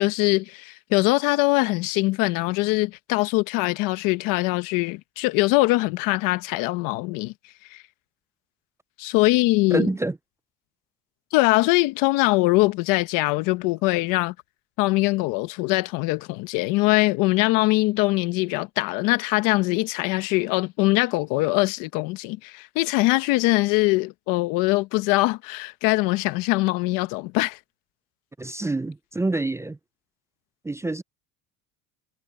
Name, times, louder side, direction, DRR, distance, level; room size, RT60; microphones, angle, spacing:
voice 1, 0.0-7.3 7.7-7.8 9.0-9.9 11.3-14.3 14.8-27.6, left 21 dB, 85° left, 1.2 m, -22 dB
voice 2, 9.7-10.2 28.4-29.8 30.6-31.0, right 2 dB, 10° right, 0.4 m, -26 dB
cardioid pair, 115°, 32 cm